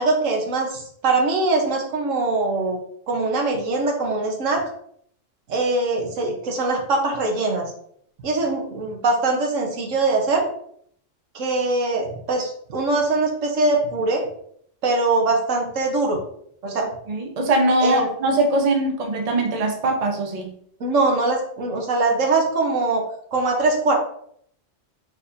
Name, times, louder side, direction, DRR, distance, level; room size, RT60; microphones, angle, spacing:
voice 1, 0.0-2.8 3.1-4.6 5.5-7.6 8.2-10.4 11.3-14.3 14.8-16.2 16.6-16.9 17.8-18.1 20.8-23.0 23.3-24.0, right 3 dB, 80° right, 2 dB, 1.3 m, -22 dB
voice 2, 16.8-20.5, right 2 dB, 35° right, 2 dB, 0.7 m, -22 dB
4.4 x 4.1 x 2.6 m, 0.65 s
omnidirectional pair, 1.3 m